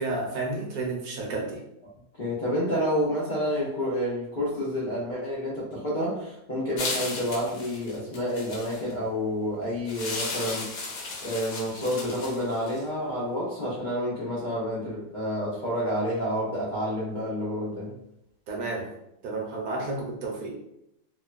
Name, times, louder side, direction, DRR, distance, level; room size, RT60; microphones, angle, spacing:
voice 1, 0.0-1.6 18.5-18.9 19.2-20.6, right 3 dB, 70° right, -1 dB, 1.0 m, -31 dB
voice 2, 2.2-18.0, equal, 85° left, -8 dB, 0.4 m, -29 dB
sound 1, 6.8-8.9 9.9-12.8, left 3 dB, 65° left, 1.0 m, -35 dB
2.9 x 2.1 x 2.4 m, 0.82 s
omnidirectional pair, 1.9 m